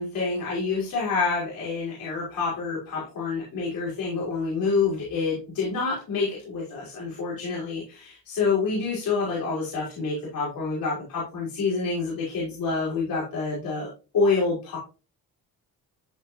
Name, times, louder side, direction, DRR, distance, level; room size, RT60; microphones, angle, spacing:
voice 1, 0.0-14.8, left 4 dB, 70° left, -6 dB, 5.1 m, -27 dB
13.5 x 4.7 x 2.9 m, 0.32 s
cardioid pair, 110°, 36 cm